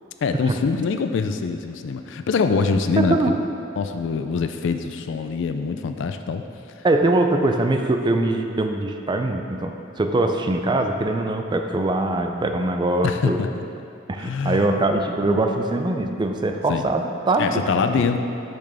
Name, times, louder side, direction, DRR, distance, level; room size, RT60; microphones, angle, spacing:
voice 1, 0.2-3.4 3.8-6.4 13.0-13.5 14.2-14.7 16.7-16.9 17.4-18.2, left 5 dB, 70° left, 8 dB, 0.4 m, -24 dB
voice 2, 3.0-3.4 6.8-13.4 14.1-17.6 18.0-18.2, right 2 dB, 25° right, 5 dB, 0.4 m, -22 dB
6.4 x 5.9 x 3.4 m, 2.6 s
head